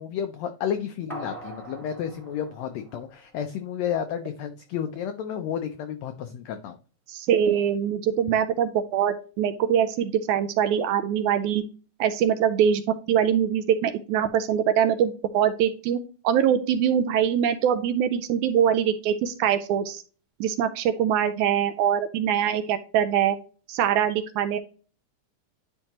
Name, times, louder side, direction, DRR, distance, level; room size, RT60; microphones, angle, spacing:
voice 1, 0.0-6.8, left 9 dB, 85° left, 8 dB, 1.5 m, -31 dB
sound 1, 1.1-3.7 4.0-4.1, right 2 dB, ahead, 1.2 m, -42 dB
voice 2, 7.1-11.6 12.0-12.8 13.1-16.0 16.2-20.0 20.4-23.4 23.7-24.6, right 9 dB, 80° right, 10 dB, 1.8 m, -23 dB
10.5 x 4.4 x 2.9 m, 0.38 s
omnidirectional pair, 3.7 m